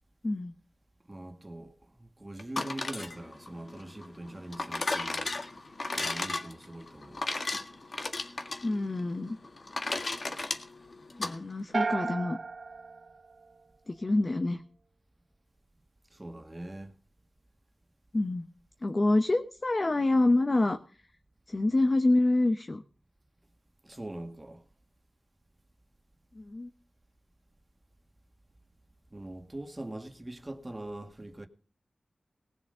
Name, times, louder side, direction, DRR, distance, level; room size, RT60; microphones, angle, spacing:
voice 1, 1.1-5.4 5.9-7.3 16.1-16.9 23.8-24.6 29.1-31.5, right 1 dB, 25° right, 1.9 m, -42 dB
sound 1, 2.4-11.3, left 3 dB, 60° left, 1.7 m, -35 dB
voice 2, 8.6-9.4 11.2-12.4 13.9-14.6 18.1-18.4 18.8-20.8 21.5-22.8 26.3-26.7, left 2 dB, 40° left, 1.0 m, -26 dB
sound 2, 11.7-14.0, right 4 dB, 70° right, 0.7 m, -34 dB
19.0 x 7.3 x 5.5 m
wide cardioid pair, 65°, 0 cm